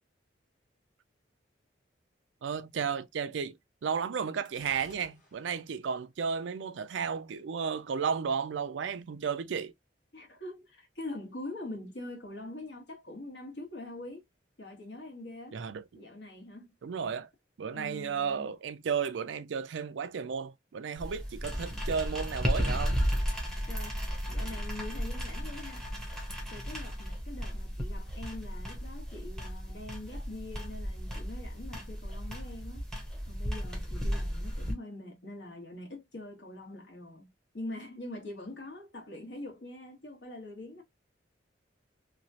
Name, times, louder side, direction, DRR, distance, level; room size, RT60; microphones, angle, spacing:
voice 1, 2.4-9.7 15.5-16.0 16.8-17.3 17.6-23.0, right 6 dB, 75° right, 0.4 m, -33 dB
Gunshot gunfire, 4.5-5.7, left 1 dB, 40° left, 1.3 m, -55 dB
voice 2, 10.1-14.2 14.6-15.6 15.9-16.7 17.7-18.5 23.7-24.0 24.3-25.9 26.5-32.8 33.3-40.8, left 2 dB, 70° left, 1.3 m, -44 dB
sound 1, 21.0-34.7, equal, 5° left, 0.7 m, -34 dB
3.0 x 2.4 x 2.6 m
head